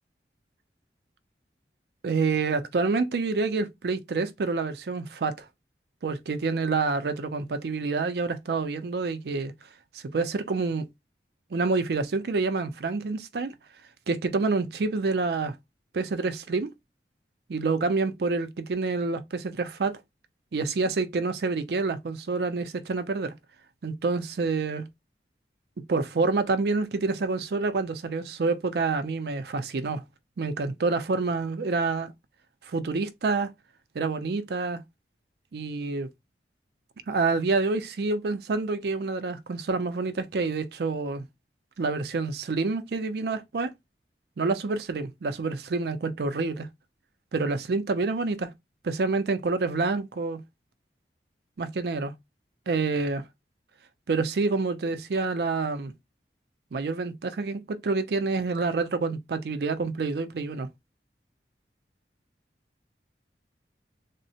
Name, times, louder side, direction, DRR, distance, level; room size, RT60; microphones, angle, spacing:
voice 1, 2.0-5.5 6.0-9.5 9.9-10.9 11.5-13.5 14.1-15.5 15.9-16.7 17.5-20.0 20.5-23.3 23.8-24.9 25.9-30.0 30.4-32.1 32.7-33.5 33.9-34.8 35.5-36.1 37.1-41.3 41.8-43.7 44.4-46.7 47.3-48.5 48.8-50.4 51.6-52.1 52.7-53.2 54.1-55.9 56.7-60.7, right 3 dB, 65° right, 0.4 m, -27 dB
3.6 x 2.0 x 2.7 m
head